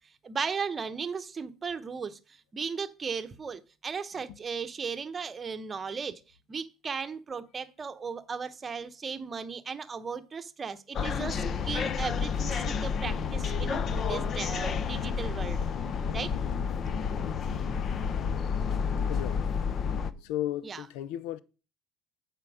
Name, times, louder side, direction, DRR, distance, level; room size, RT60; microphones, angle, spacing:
voice 1, 0.2-6.2 6.5-15.6 16.1-16.4 20.6-20.9, right 5 dB, 25° right, 0.9 m, -36 dB
sound 1, 10.9-20.1, left 6 dB, 40° left, 0.7 m, -30 dB
voice 2, 19.1-19.5 20.2-21.4, left 13 dB, 80° left, 0.6 m, -34 dB
8.2 x 4.5 x 6.4 m
cardioid pair, 115°, 0 cm